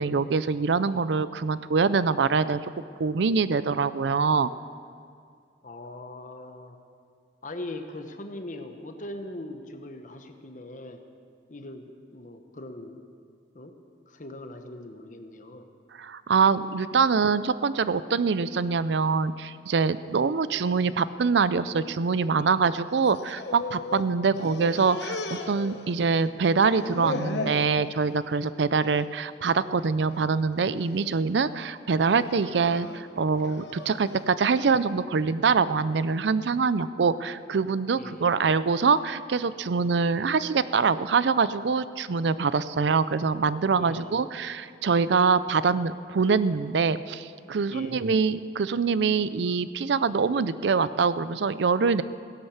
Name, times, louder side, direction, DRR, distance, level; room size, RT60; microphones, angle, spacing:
voice 1, 0.0-2.6 3.0-4.5 16.0-52.0, right 5 dB, 75° right, 15 dB, 0.5 m, -24 dB
voice 2, 5.6-6.8 7.4-11.0 11.5-13.0 13.5-13.8 14.1-15.6 24.3-24.5 38.0-38.3 43.8-44.1 47.7-48.0, left 1 dB, 45° left, 6 dB, 1.1 m, -40 dB
sound 1, 23.0-24.1 24.3-26.2 26.5-27.7 28.1-28.5 28.8-29.0 29.9-30.3 30.8-31.2 32.0-34.2, left 2 dB, 70° left, 1.1 m, -36 dB
16.5 x 11.0 x 7.2 m, 2.3 s
head